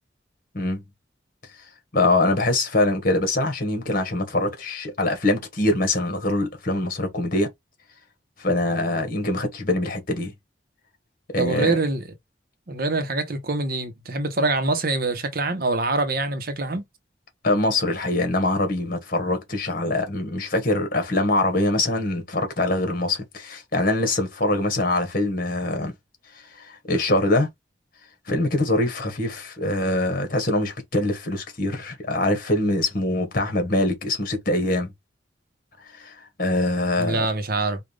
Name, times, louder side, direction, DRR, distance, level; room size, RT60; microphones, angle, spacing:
voice 1, 1.9-7.5 8.4-10.3 11.3-11.8 17.4-25.9 26.6-27.5 28.3-34.9 35.9-37.3, left 2 dB, 50° left, 1.7 m, -23 dB
voice 2, 11.4-12.1 12.7-16.8 37.0-37.8, right 3 dB, 55° right, 1.0 m, -25 dB
5.0 x 2.5 x 3.4 m
head